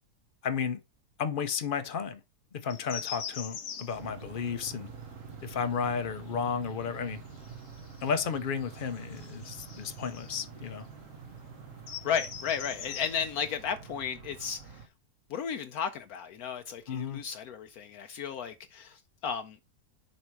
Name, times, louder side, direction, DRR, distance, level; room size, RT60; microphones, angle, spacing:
voice 1, 0.4-0.8 1.2-2.2 2.5-4.9 5.4-7.2 8.0-10.9 16.9-17.2, left 6 dB, 50° left, 0.6 m, -33 dB
sound 1, 2.7-13.7, left 7 dB, 90° left, 1.7 m, -46 dB
sound 2, 3.9-14.9, right 6 dB, 60° right, 1.1 m, -47 dB
voice 2, 12.0-14.6 15.3-19.6, left 7 dB, 70° left, 1.0 m, -34 dB
7.1 x 4.6 x 4.5 m
omnidirectional pair, 1.7 m